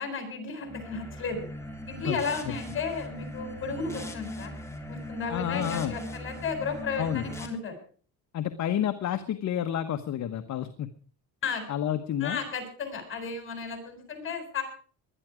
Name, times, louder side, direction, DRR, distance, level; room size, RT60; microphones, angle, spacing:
voice 1, 0.0-1.5 1.9-4.5 4.9-7.8 11.4-11.6 12.2-14.6, left 5 dB, 35° left, 5 dB, 7.6 m, -34 dB
sound 1, 0.6-7.5, equal, 5° left, 3.4 m, -40 dB
voice 2, 5.3-6.0 7.0-7.3 8.3-10.9 11.7-12.4, left 10 dB, 50° left, 9 dB, 1.3 m, -30 dB
20.5 x 12.5 x 5.0 m, 0.43 s
cardioid pair, 130°, 37 cm